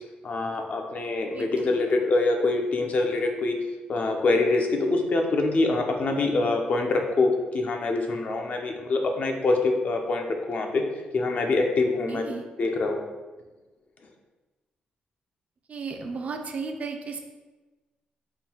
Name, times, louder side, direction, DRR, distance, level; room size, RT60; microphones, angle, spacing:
voice 1, 0.2-3.6 3.9-10.8 11.1-12.2 12.6-13.0, left 3 dB, 50° left, 3 dB, 0.5 m, -25 dB
voice 2, 1.3-1.7 12.0-12.4 15.7-17.2, right 4 dB, 50° right, 4 dB, 0.5 m, -34 dB
3.6 x 2.2 x 4.4 m, 1.2 s
cardioid pair, 95°, 3 cm